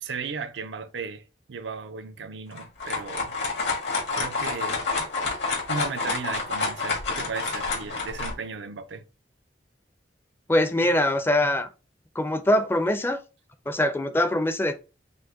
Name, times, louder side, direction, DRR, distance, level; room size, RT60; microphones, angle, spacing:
voice 1, 0.0-3.4 4.2-4.9 5.7-9.0, right 5 dB, 85° right, 0.5 m, -35 dB
sound 1, 2.5-8.3, left 4 dB, 70° left, 1.6 m, -28 dB
voice 2, 10.5-11.7 12.2-13.2 13.7-14.7, left 1 dB, 10° left, 0.4 m, -23 dB
5.2 x 2.1 x 3.6 m
head